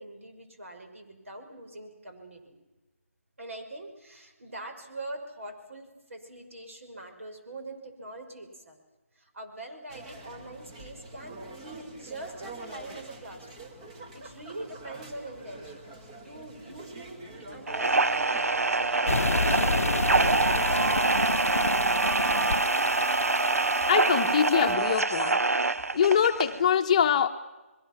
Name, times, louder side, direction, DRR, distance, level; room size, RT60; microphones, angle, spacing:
voice 1, 0.0-2.6 3.4-8.8 9.1-13.7 14.1-15.8 16.2-21.2, right 2 dB, 65° right, 4 dB, 5.8 m, -43 dB
sound 1, 9.9-21.4, right 2 dB, 25° right, 2.3 m, -46 dB
sound 2, 17.7-26.6, right 3 dB, 85° right, 0.8 m, -25 dB
sound 3, 19.1-24.7, left 3 dB, 80° left, 0.7 m, -31 dB
voice 2, 23.9-25.4 25.9-27.3, left 8 dB, 30° left, 5 dB, 1.0 m, -23 dB
26.0 x 22.0 x 6.0 m, 1.1 s
figure-of-eight pair, 155°, 8 cm